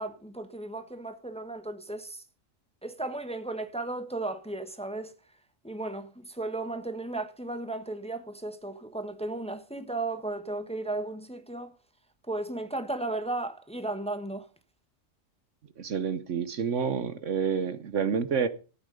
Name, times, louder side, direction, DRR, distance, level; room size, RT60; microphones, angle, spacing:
voice 1, 0.0-2.2 2.8-5.1 5.6-11.7 12.3-14.4, right 2 dB, 5° left, 1.2 m, -35 dB
voice 2, 15.8-18.5, right 6 dB, 70° right, 1.3 m, -28 dB
14.5 x 8.9 x 5.2 m
omnidirectional pair, 1.4 m